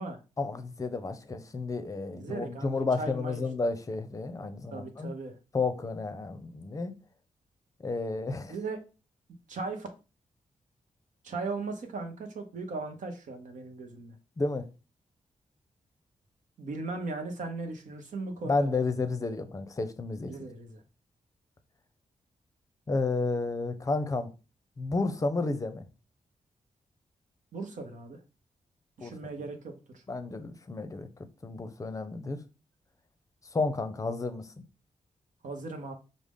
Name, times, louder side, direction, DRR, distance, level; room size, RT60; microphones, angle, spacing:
voice 1, 0.4-5.1 5.5-6.9 7.8-8.5 14.4-14.7 18.5-20.3 22.9-24.3 24.8-25.8 29.0-29.1 30.1-31.1 31.4-32.4 33.5-34.5, left 3 dB, 25° left, 0.6 m, -31 dB
voice 2, 2.1-3.4 4.7-5.3 8.5-8.8 9.5-9.9 11.2-14.1 16.6-18.7 20.2-20.8 27.5-28.2 29.0-30.0 35.4-35.9, right 3 dB, 80° right, 0.8 m, -38 dB
4.9 x 2.1 x 3.5 m
cardioid pair, 85°, 13 cm